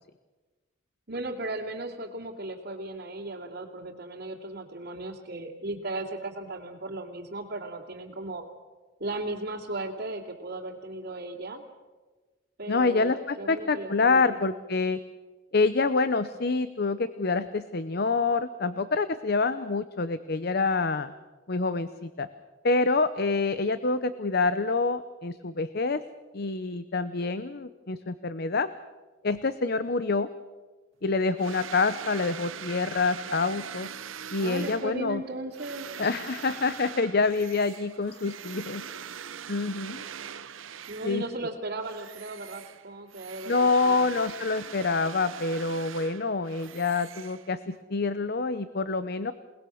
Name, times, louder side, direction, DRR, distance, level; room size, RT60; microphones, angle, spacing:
voice 1, 1.1-8.4 9.0-11.6 12.6-14.4 34.4-35.9 40.9-44.1, right 2 dB, 55° right, -4 dB, 2.8 m, -36 dB
voice 2, 12.7-15.0 15.5-21.1 21.5-22.3 22.6-26.0 26.3-28.7 29.2-30.3 31.0-33.9 34.3-35.2 36.0-38.8 39.5-40.0 41.0-41.2 43.5-49.3, left 3 dB, 50° left, 13 dB, 0.8 m, -27 dB
sound 1, 31.4-41.4 41.8-47.8, right 8 dB, 80° right, 0.8 m, -42 dB
28.5 x 19.5 x 6.5 m, 1.3 s
head